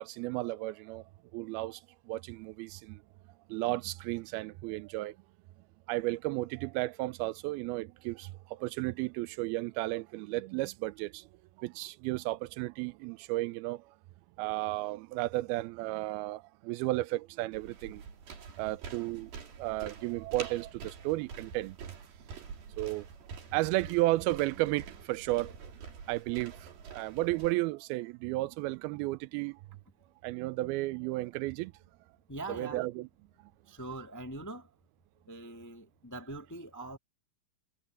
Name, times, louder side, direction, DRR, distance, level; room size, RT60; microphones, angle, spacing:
voice 1, 0.0-3.0 3.5-5.2 5.9-11.3 11.6-13.9 14.4-18.0 18.6-19.3 19.6-21.8 22.8-23.1 23.5-25.5 26.1-29.6 30.2-31.7 32.5-33.1, right 19 dB, 90° right, 2.5 m, -33 dB
sound 1, 17.5-27.5, right 6 dB, 70° right, 5.2 m, -47 dB
voice 2, 32.3-32.9 33.7-34.7 35.3-37.0, right 2 dB, 10° left, 0.8 m, -42 dB
omnidirectional pair, 4.3 m